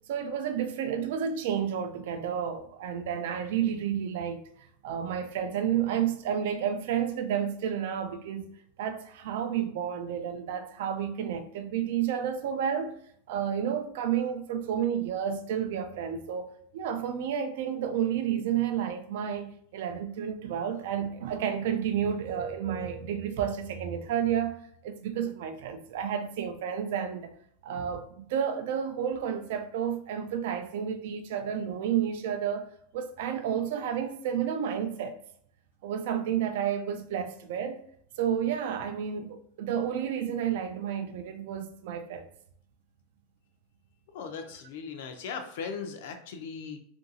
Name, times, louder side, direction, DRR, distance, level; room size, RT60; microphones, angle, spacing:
voice 1, 0.1-4.4 4.8-8.5 8.8-12.9 13.3-27.3 27.6-32.6 32.9-35.2 35.8-37.8 38.2-42.3, right 8 dB, 65° right, 0.4 m, -31 dB
voice 2, 44.1-46.8, left 5 dB, 60° left, 0.5 m, -38 dB
2.8 x 2.6 x 2.6 m
supercardioid pair, 175°, 0 cm